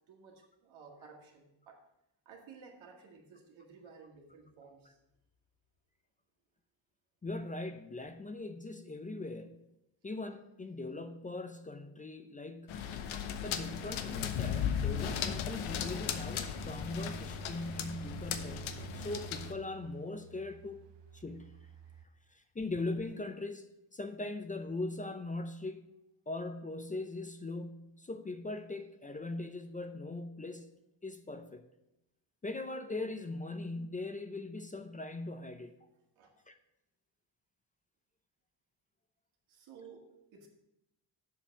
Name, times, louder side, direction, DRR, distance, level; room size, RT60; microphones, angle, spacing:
voice 1, 0.1-1.8 2.3-5.0 36.2-36.3 39.5-40.5, right 5 dB, 90° right, 1 dB, 2.0 m, -55 dB
voice 2, 7.2-9.6 10.0-12.8 13.4-20.8 21.1-21.6 22.3-25.8 26.3-30.7 31.0-31.6 32.4-35.7 36.5-36.6, left 2 dB, 20° left, 8 dB, 0.5 m, -40 dB
sound 1, 12.7-19.5, left 8 dB, 85° left, 0.9 m, -36 dB
sound 2, 14.3-22.1, right 6 dB, 65° right, 0.7 m, -49 dB
7.4 x 5.4 x 5.9 m, 0.88 s
cardioid pair, 125°, 46 cm